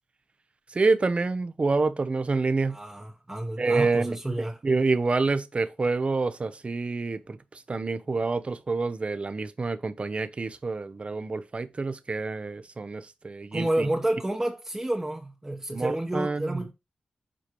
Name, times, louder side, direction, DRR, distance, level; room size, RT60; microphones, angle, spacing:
voice 1, 0.7-2.8 3.6-4.2 4.6-7.4 7.7-13.9 15.7-16.6, right 3 dB, 45° right, 0.7 m, -27 dB
voice 2, 2.7-4.6 13.5-16.7, right 1 dB, 20° right, 1.0 m, -29 dB
7.6 x 5.0 x 3.0 m
wide cardioid pair, 80°, 3 cm